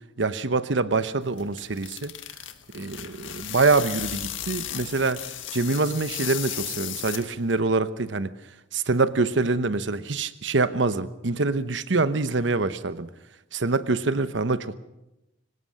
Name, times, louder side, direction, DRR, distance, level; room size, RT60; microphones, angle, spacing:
voice 1, 0.2-2.1 2.7-5.2 5.5-8.3 8.7-13.1 13.5-14.7, right 3 dB, 70° right, 13 dB, 1.0 m, -25 dB
sound 1, 1.2-7.6, left 11 dB, 85° left, 1.6 m, -35 dB
23.5 x 19.0 x 6.5 m, 0.95 s
head